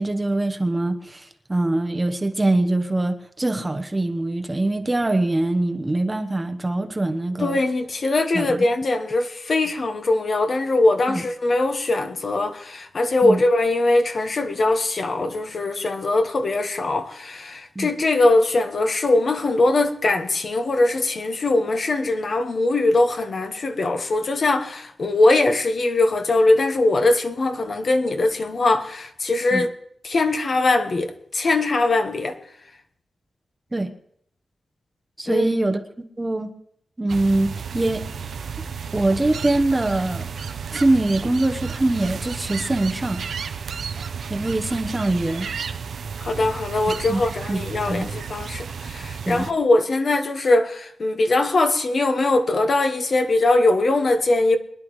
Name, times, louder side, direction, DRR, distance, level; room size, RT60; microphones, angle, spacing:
voice 1, 0.0-7.6 8.3-8.6 11.1-11.2 13.2-13.4 17.7-17.9 29.5-29.6 33.7-33.9 35.2-35.8 36.2-36.5 37.0-38.0 38.9-40.3 40.7-43.3 44.3-45.5 47.1-47.2 47.5-47.6 47.9-48.1 49.3-49.5, right 2 dB, 15° right, 0.9 m, -23 dB
voice 2, 7.4-29.7 30.0-32.4 35.3-35.4 46.2-54.6, left 2 dB, 45° left, 1.2 m, -21 dB
sound 1, 37.1-49.5, right 6 dB, 75° right, 0.8 m, -32 dB
23.5 x 10.5 x 3.2 m
wide cardioid pair, 150°, 0 cm